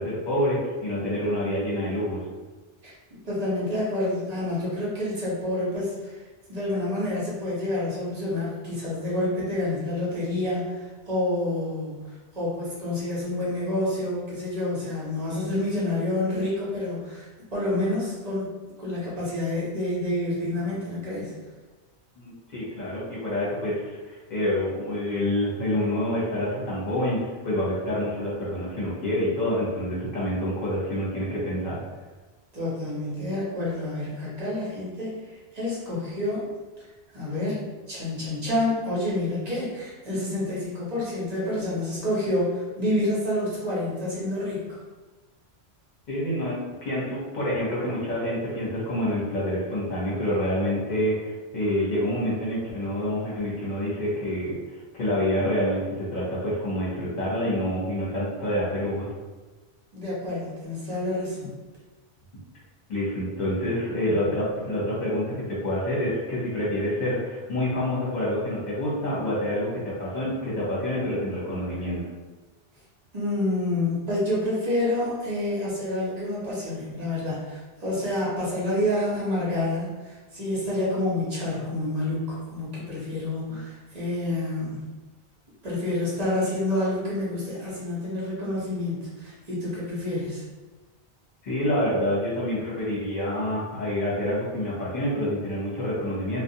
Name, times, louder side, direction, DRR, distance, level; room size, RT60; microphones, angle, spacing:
voice 1, 0.0-2.2 22.2-31.8 46.1-54.5 54.9-59.1 62.9-72.1 91.4-96.4, left 1 dB, 45° left, -6 dB, 0.9 m, -27 dB
voice 2, 3.2-6.1 6.5-18.5 18.8-21.3 32.5-35.2 35.5-36.5 37.1-37.6 37.9-44.6 59.9-61.5 73.1-84.8 85.6-90.4, left 1 dB, 40° right, -7 dB, 0.9 m, -28 dB
2.4 x 2.1 x 2.7 m, 1.2 s
omnidirectional pair, 1.1 m